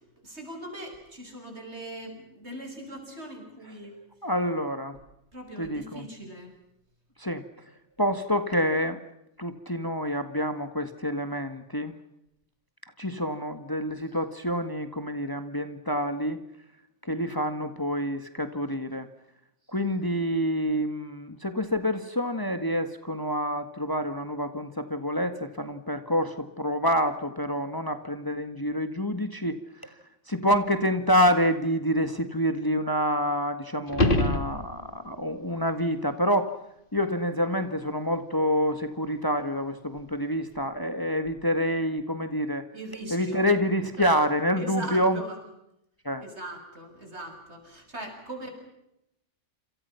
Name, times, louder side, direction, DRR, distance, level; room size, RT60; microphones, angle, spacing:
voice 1, 0.0-4.0 5.3-6.5 42.7-43.5 44.6-45.4 46.2-48.5, right 1 dB, 65° right, 4 dB, 7.5 m, -40 dB
voice 2, 4.2-5.0 5.6-6.1 7.2-7.4 8.0-9.0 9.4-11.9 13.0-16.4 17.0-19.1 19.7-29.6 29.8-29.9 30.3-36.6 36.9-42.6 43.1-45.2 46.0-46.2, equal, 20° left, 9 dB, 1.8 m, -27 dB
sound 1, 33.9-35.1 40.0-40.1, left 1 dB, 45° left, 2.3 m, -25 dB
28.0 x 28.0 x 5.8 m, 0.82 s
omnidirectional pair, 1.2 m